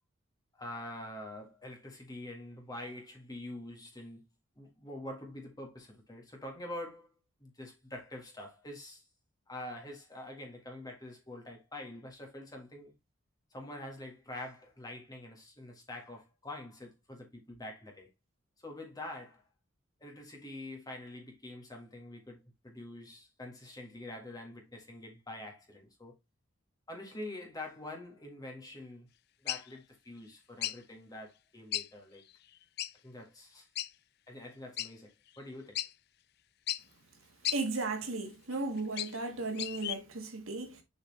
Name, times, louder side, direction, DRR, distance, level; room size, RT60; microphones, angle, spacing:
voice 1, 0.5-4.2 4.6-7.1 7.4-9.0 9.5-12.9 13.5-18.1 18.6-19.4 20.0-26.2 26.9-29.1 29.4-32.2 33.0-33.7 34.3-35.8, left 1 dB, 20° left, 1.7 m, -45 dB
sound 1, 29.5-29.7 30.6-30.8 31.7-31.9 32.2-32.3 32.8-32.9 33.8-33.9 34.8-34.9 35.4-35.5 35.7-35.9 36.7-36.8 37.4-37.6 38.5-39.2 39.5-40.0, left 13 dB, 50° left, 0.3 m, -34 dB
voice 2, 37.5-40.8, right 3 dB, 75° right, 1.6 m, -35 dB
7.0 x 4.4 x 3.2 m
head